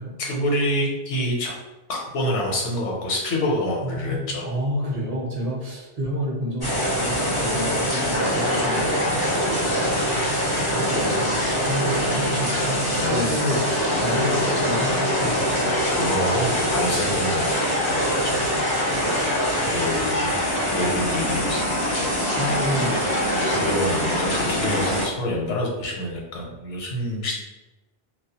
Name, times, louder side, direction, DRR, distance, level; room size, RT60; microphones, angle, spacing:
voice 1, 0.2-1.5 1.9-4.5 12.9-13.3 15.6-18.6 19.7-20.4 20.7-21.6 21.9-22.2 23.4-27.4, left 1 dB, 85° left, -1 dB, 1.0 m, -27 dB
voice 2, 3.8-10.3 10.7-15.6 22.4-23.3, equal, 45° right, -4 dB, 0.5 m, -30 dB
sound 1, 6.6-25.1, equal, 30° left, 0.5 m, -23 dB
2.3 x 2.1 x 2.7 m, 1.1 s
omnidirectional pair, 1.2 m